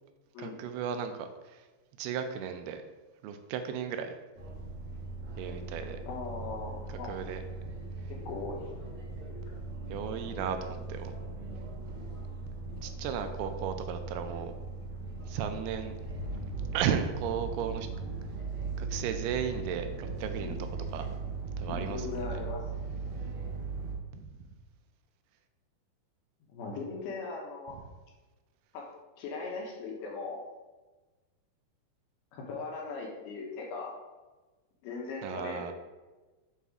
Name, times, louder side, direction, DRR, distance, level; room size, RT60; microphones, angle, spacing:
voice 1, 0.4-1.6 2.0-2.8 3.2-4.2 5.4-6.0 7.1-7.4 9.9-11.1 12.8-14.6 15.3-16.0 16.7-17.9 18.8-20.6 20.9-21.1 21.6-22.4 24.1-24.3 35.2-35.7, right 8 dB, 85° right, 7 dB, 2.5 m, -35 dB
sound 1, 4.4-24.0, right 3 dB, 60° right, 1.9 m, -39 dB
voice 2, 6.1-7.3 8.1-8.7 20.4-20.6 21.7-22.6 26.5-27.8 28.7-28.9 29.2-30.4 32.3-34.0 34.8-35.7, left 4 dB, 75° left, 0 dB, 2.7 m, -39 dB
7.1 x 4.1 x 3.6 m, 1.2 s
omnidirectional pair, 4.6 m